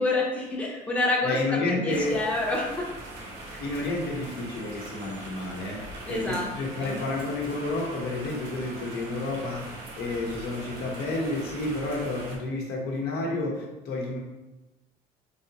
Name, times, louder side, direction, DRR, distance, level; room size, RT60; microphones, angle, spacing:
voice 1, 0.0-2.9 6.1-6.5 6.8-7.0, left 2 dB, 10° left, -3 dB, 0.7 m, -28 dB
voice 2, 1.2-2.2 3.6-14.2, left 2 dB, 75° left, -1 dB, 0.8 m, -30 dB
sound 1, 1.9-12.4, right 1 dB, 85° right, 0.8 m, -41 dB
3.2 x 2.7 x 2.8 m, 1.0 s
cardioid pair, 110°, 17 cm